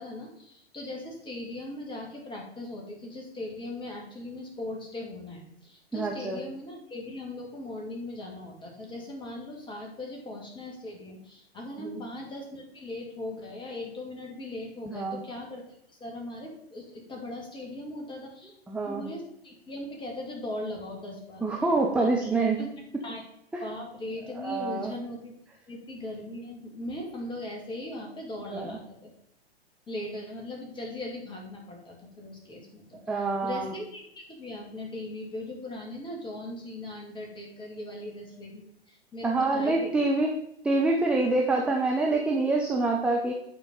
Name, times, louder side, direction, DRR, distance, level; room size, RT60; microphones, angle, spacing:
voice 1, 0.0-15.6 15.9-18.5 18.9-21.4 22.0-22.3 22.6-22.7 23.0-23.2 23.6-25.3 25.7-29.1 29.9-39.9, left 1 dB, 15° left, 0 dB, 2.3 m, -39 dB
voice 2, 5.9-6.4 11.8-12.0 14.9-15.2 18.7-19.1 21.4-22.6 23.5-23.6 24.3-24.9 28.5-28.8 33.1-33.7 39.2-40.3 40.6-43.3, right 3 dB, 5° right, 0 dB, 0.6 m, -26 dB
9.0 x 4.5 x 5.4 m, 0.75 s
figure-of-eight pair, 105°, 32 cm